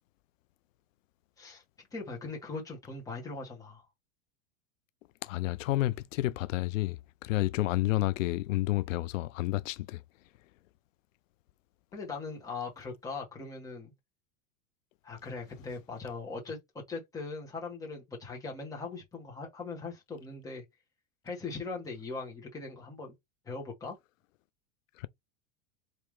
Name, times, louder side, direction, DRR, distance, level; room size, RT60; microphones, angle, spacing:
voice 1, 1.9-3.8 11.9-13.9 15.0-16.6 16.9-20.6 21.2-23.1 23.4-24.0, left 4 dB, 10° left, 1.3 m, -40 dB
voice 2, 5.2-7.0 7.2-10.0, left 17 dB, 90° left, 0.5 m, -30 dB
3.6 x 2.8 x 4.7 m
supercardioid pair, 155°, 38 cm